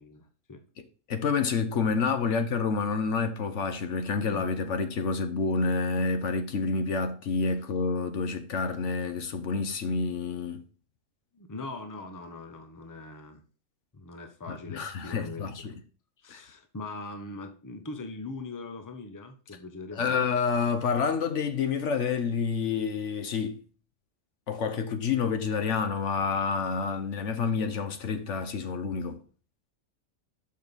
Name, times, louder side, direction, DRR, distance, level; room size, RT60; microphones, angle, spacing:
voice 1, 0.0-0.6 11.3-13.4 13.9-15.8 16.2-20.2, left 2 dB, 15° left, 0.8 m, -41 dB
voice 2, 0.8-10.6 14.5-15.7 16.3-16.4 20.0-23.6 24.5-29.2, left 5 dB, 65° left, 1.2 m, -28 dB
6.9 x 5.4 x 4.0 m
omnidirectional pair, 1.4 m